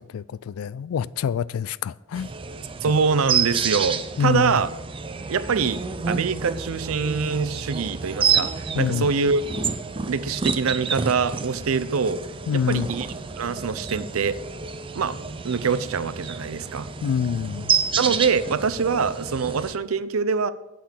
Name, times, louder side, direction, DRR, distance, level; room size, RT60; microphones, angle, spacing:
voice 1, 0.1-2.3 4.2-4.6 8.7-9.1 12.5-12.9 17.0-17.7, left 7 dB, 80° left, 0.3 m, -26 dB
sound 1, 2.1-19.7, right 6 dB, 25° right, 0.5 m, -29 dB
voice 2, 2.8-4.7 5.3-5.8 6.1-9.4 10.1-12.2 12.5-13.1 13.4-14.4 14.9-15.2 15.4-16.9 18.0-20.5, right 5 dB, 80° right, 0.6 m, -24 dB
8.5 x 5.9 x 7.2 m
head